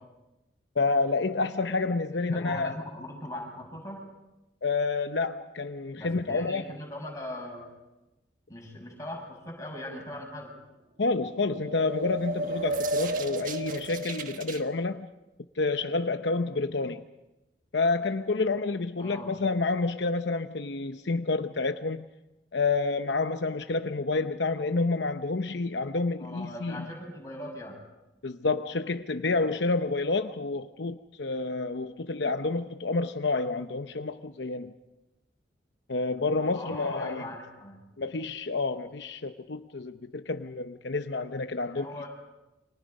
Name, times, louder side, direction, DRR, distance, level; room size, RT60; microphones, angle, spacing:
voice 1, 0.8-2.7 4.6-6.6 11.0-15.1 15.6-17.0 17.7-22.0 22.5-26.9 28.2-34.7 35.9-37.2 38.0-41.9, left 3 dB, 70° left, 0.8 m, -29 dB
voice 2, 2.1-4.0 5.9-7.7 8.5-10.5 16.7-16.9 19.0-19.3 26.2-27.8 36.5-37.8 41.6-42.1, left 1 dB, 20° left, 6.4 m, -40 dB
sound 1, 11.3-14.6, right 1 dB, 45° right, 1.4 m, -33 dB
29.0 x 25.5 x 5.4 m
head